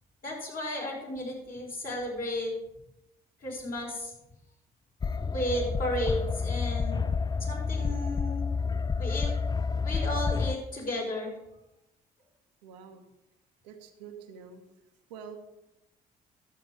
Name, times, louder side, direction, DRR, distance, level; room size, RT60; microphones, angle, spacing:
voice 1, 0.2-2.5 3.4-4.1 5.3-7.0 7.4-8.5 9.0-9.3 9.8-11.3, left 1 dB, 45° left, -3 dB, 5.0 m, -33 dB
sound 1, 5.0-10.6, left 5 dB, 20° left, 0.4 m, -29 dB
voice 2, 12.6-13.0 13.6-14.6 15.1-15.4, right 7 dB, 80° right, 5 dB, 1.1 m, -46 dB
11.5 x 7.8 x 4.9 m, 0.90 s
hypercardioid pair, 45°, 21 cm